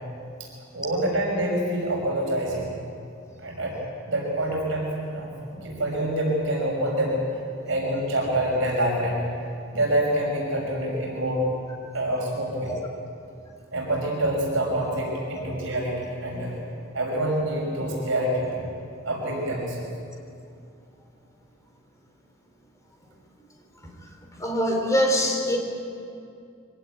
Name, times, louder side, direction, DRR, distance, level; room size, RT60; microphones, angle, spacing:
voice 1, 0.7-2.7 3.4-3.7 4.1-7.2 7.7-9.3 9.7-11.4 11.9-12.7 13.7-16.0 16.2-16.6 16.9-18.7 19.0-19.9, right 1 dB, 70° right, -2 dB, 5.7 m, -26 dB
voice 2, 24.4-25.6, equal, 15° left, 1 dB, 3.6 m, -23 dB
24.5 x 17.0 x 9.5 m, 2.5 s
head